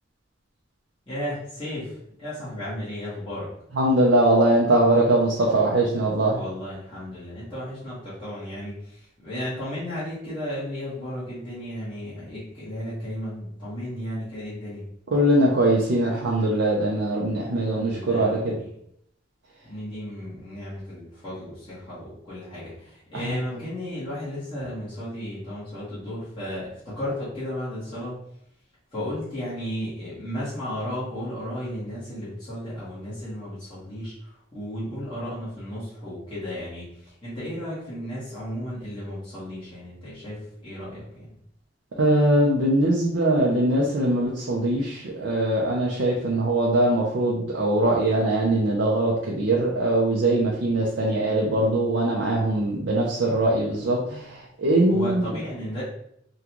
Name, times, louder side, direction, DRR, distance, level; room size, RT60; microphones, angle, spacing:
voice 1, 1.1-3.5 6.3-14.8 17.6-18.7 19.6-28.2 28.9-41.3 54.9-55.8, equal, 25° left, -12 dB, 1.3 m, -34 dB
voice 2, 3.7-6.4 15.1-18.5 23.2-23.4 42.0-55.3, right 1 dB, 75° right, -3 dB, 0.5 m, -22 dB
3.7 x 2.3 x 2.9 m, 0.72 s
head